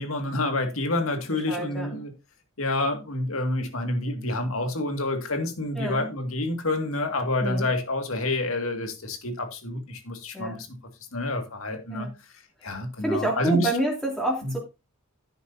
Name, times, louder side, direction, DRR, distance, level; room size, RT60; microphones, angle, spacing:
voice 1, 0.0-2.1 2.6-10.8 11.1-12.1 12.6-13.7 14.4-14.5, left 1 dB, 85° left, 2.3 m, -28 dB
voice 2, 1.3-1.9 5.7-6.1 7.4-7.7 10.3-10.6 11.9-12.1 12.6-14.6, right 1 dB, 5° left, 2.8 m, -28 dB
11.0 x 9.4 x 2.8 m
head